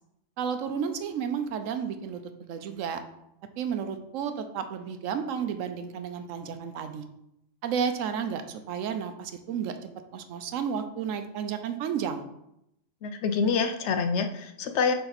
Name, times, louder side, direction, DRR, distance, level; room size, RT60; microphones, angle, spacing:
voice 1, 0.4-2.2 2.5-3.0 3.6-7.0 7.6-9.8 10.1-12.2, right 7 dB, 80° right, 8 dB, 1.0 m, -32 dB
voice 2, 13.0-14.9, left 5 dB, 70° left, 7 dB, 0.8 m, -26 dB
6.8 x 3.5 x 4.0 m, 0.82 s
omnidirectional pair, 1.3 m